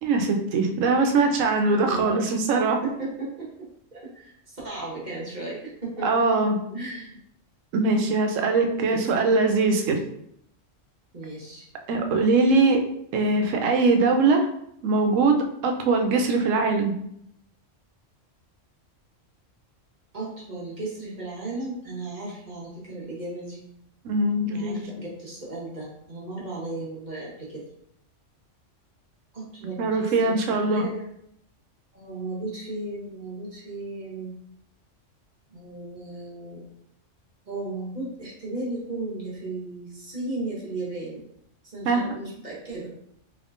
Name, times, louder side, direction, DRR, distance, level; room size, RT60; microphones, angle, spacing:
voice 1, 0.0-2.8 6.0-6.6 7.7-10.0 11.9-12.8 13.1-14.5 14.8-15.4 15.6-17.0 24.0-24.9 29.8-30.8 41.9-42.1, right 3 dB, 90° right, 4 dB, 1.0 m, -21 dB
voice 2, 1.7-2.3 2.8-6.1 6.7-7.2 8.9-9.4 11.1-11.7 20.1-23.6 24.5-27.7 29.3-31.1 31.9-34.4 35.5-36.6 37.5-41.2 41.6-42.9, right 2 dB, 40° right, -5 dB, 1.0 m, -35 dB
3.4 x 3.1 x 2.5 m, 0.72 s
omnidirectional pair, 1.3 m